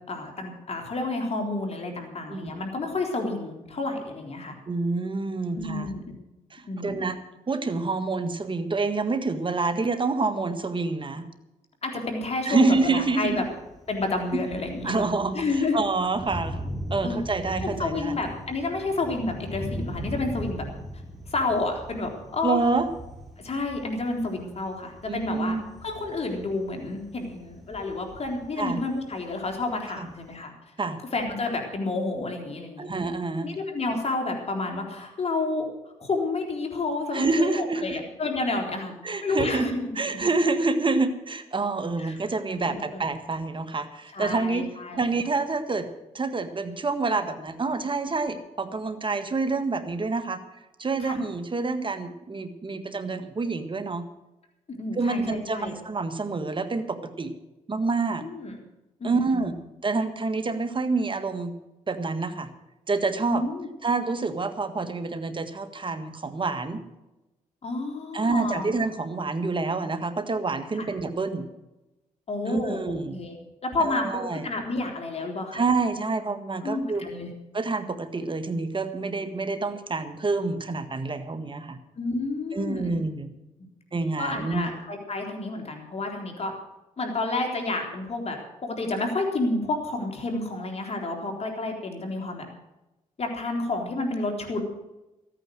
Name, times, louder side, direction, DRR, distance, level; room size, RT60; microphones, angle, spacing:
voice 1, 0.1-4.6 5.5-6.0 6.7-7.1 11.8-13.4 13.9-15.1 15.3-15.8 17.0-17.2 17.6-20.6 21.3-22.6 23.4-30.5 31.1-33.0 33.4-35.7 36.0-38.9 39.2-40.2 42.0-42.2 42.6-43.0 44.1-45.2 51.0-51.2 54.7-55.7 58.2-58.5 59.0-59.5 63.2-63.7 67.6-68.7 70.7-70.9 72.3-73.4 73.6-75.6 76.6-77.3 82.0-83.0 84.2-86.5 87.0-92.5 93.2-94.6, left 3 dB, 50° left, 2 dB, 3.7 m, -30 dB
voice 2, 2.3-2.6 4.7-5.9 6.5-7.2 7.5-11.2 12.4-13.5 14.3-14.4 14.8-15.4 15.7-18.1 22.4-22.9 25.1-25.6 28.6-28.8 30.0-30.1 30.8-31.0 32.8-33.5 37.1-38.0 39.0-39.7 40.0-44.7 44.9-45.9 46.1-50.4 50.8-54.0 54.9-57.3 57.7-58.2 59.0-59.5 59.8-61.5 61.9-62.5 62.9-63.4 63.8-66.8 68.1-71.4 72.5-73.2 73.8-74.4 75.5-77.1 77.5-81.8 82.5-83.3 83.9-84.7, right 3 dB, 35° right, 9 dB, 1.7 m, -27 dB
Thunder, 12.8-30.4, equal, ahead, 4.0 m, -40 dB
14.0 x 9.3 x 7.7 m, 0.98 s
cardioid pair, 65°, 14 cm